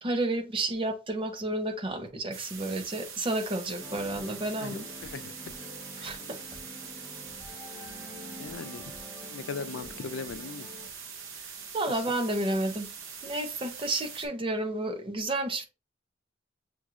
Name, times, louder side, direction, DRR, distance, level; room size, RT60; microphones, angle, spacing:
voice 1, 0.0-4.9 6.0-6.4 11.7-12.9 13.2-15.7, right 2 dB, 25° right, 0.6 m, -31 dB
sound 1, 2.3-14.3, right 6 dB, 80° right, 0.8 m, -43 dB
sound 2, 3.8-10.9, left 2 dB, ahead, 0.9 m, -47 dB
voice 2, 4.6-5.5 6.0-6.1 8.4-8.8 9.3-10.7, left 5 dB, 75° left, 0.4 m, -39 dB
6.2 x 3.0 x 2.4 m
head